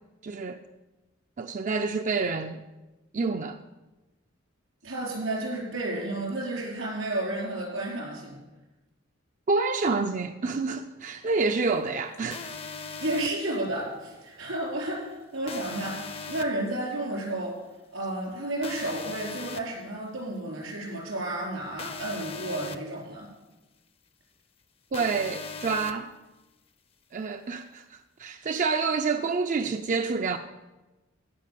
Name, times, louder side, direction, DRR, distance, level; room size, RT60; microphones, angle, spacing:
voice 1, 0.2-0.6 1.4-2.6 3.1-3.6 9.5-12.5 24.9-26.1 27.1-30.4, right 4 dB, 40° right, 7 dB, 0.4 m, -28 dB
voice 2, 4.8-8.4 13.0-17.6 17.9-23.3, right 1 dB, 85° right, -2 dB, 4.8 m, -32 dB
sound 1, 12.3-13.3 15.5-16.4 18.6-19.6 21.8-22.8 24.9-25.9, left 4 dB, 30° left, 0.6 m, -38 dB
16.5 x 5.5 x 7.5 m, 1.1 s
head